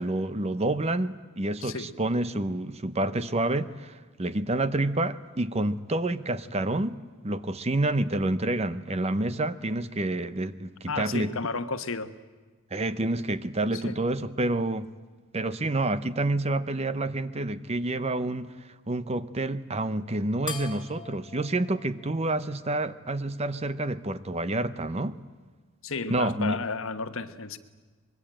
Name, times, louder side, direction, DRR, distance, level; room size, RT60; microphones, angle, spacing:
voice 1, 0.0-7.0 7.2-11.3 12.7-14.9 15.3-18.5 18.9-25.2 26.1-26.6, right 2 dB, 30° right, 0.8 m, -28 dB
voice 2, 1.6-1.9 10.9-12.1 13.7-14.0 25.8-27.6, left 4 dB, 60° left, 1.2 m, -32 dB
sound 1, 20.5-23.3, left 6 dB, 20° left, 2.2 m, -42 dB
25.0 x 22.0 x 9.0 m
head